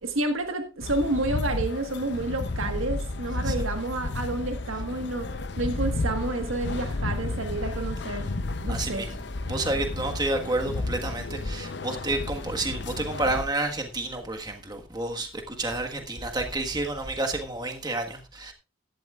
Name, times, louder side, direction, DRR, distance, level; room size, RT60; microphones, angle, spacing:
voice 1, 0.0-5.3 5.6-8.3 8.6-9.1, right 2 dB, 90° right, 1.5 m, -30 dB
sound 1, 0.8-13.5, left 2 dB, 55° left, 0.7 m, -32 dB
voice 2, 8.7-9.1 9.5-18.5, right 2 dB, 20° right, 1.5 m, -30 dB
16.0 x 12.0 x 2.4 m
head